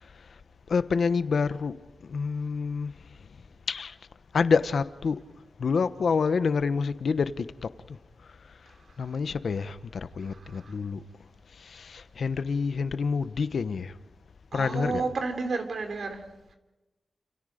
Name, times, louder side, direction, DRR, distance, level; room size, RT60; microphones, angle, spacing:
voice 1, 0.7-1.7 2.1-2.9 3.7-3.9 4.3-5.2 5.6-7.5 9.0-11.0 11.7-13.9 14.5-15.0, left 5 dB, 75° left, 1.0 m, -27 dB
voice 2, 10.3-10.7 14.5-16.2, right 4 dB, 75° right, 3.3 m, -32 dB
29.5 x 27.5 x 5.1 m
wide cardioid pair, 100°, 0 cm